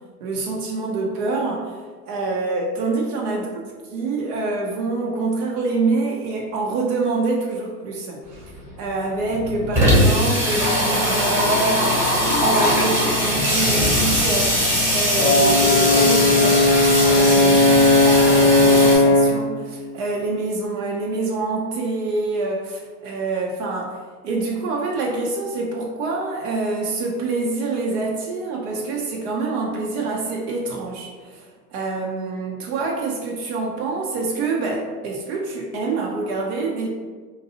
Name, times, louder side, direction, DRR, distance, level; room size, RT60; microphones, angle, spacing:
voice 1, 0.2-1.8 2.1-3.5 3.9-8.5 8.8-24.0 24.2-36.9, right 3 dB, 60° right, -1 dB, 0.6 m, -26 dB
Water tap faucet / Sink (filling or washing), 8.3-8.4 8.7-8.8 9.1-19.0, equal, 5° right, 1.0 m, -20 dB
Brass instrument, 15.2-19.4, left 2 dB, 20° left, 0.4 m, -16 dB
2.7 x 2.2 x 2.7 m, 1.5 s
hypercardioid pair, 95°, 48 cm